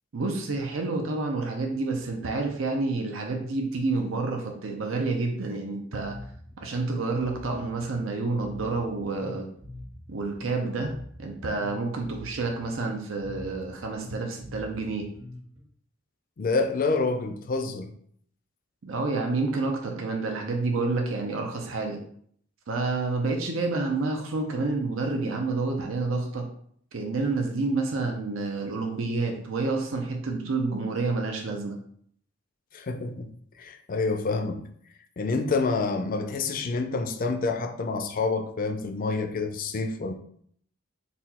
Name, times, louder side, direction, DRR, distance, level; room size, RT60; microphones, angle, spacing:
voice 1, 0.1-6.2 6.6-9.5 10.1-10.9 11.2-15.1 18.8-22.0 22.7-26.5 26.9-31.8, right 3 dB, 85° right, 0.6 m, -29 dB
Bass guitar, 6.0-15.6, left 1 dB, 65° right, 1.6 m, -44 dB
voice 2, 16.4-17.9 32.7-33.3 33.6-34.6 35.2-40.1, left 3 dB, 45° left, 0.4 m, -28 dB
4.1 x 2.3 x 4.2 m
head